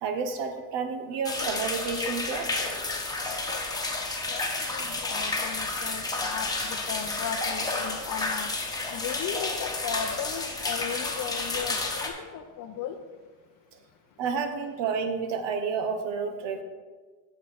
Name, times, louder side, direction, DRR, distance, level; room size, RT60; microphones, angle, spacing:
voice 1, 0.0-2.5 14.2-16.6, right 5 dB, 65° right, 1.2 m, -30 dB
sound 1, 1.2-12.1, left 2 dB, 10° left, 1.3 m, -31 dB
voice 2, 4.3-8.5 8.9-13.0, left 8 dB, 45° left, 0.6 m, -36 dB
8.4 x 7.0 x 4.2 m
supercardioid pair, 105°, 46 cm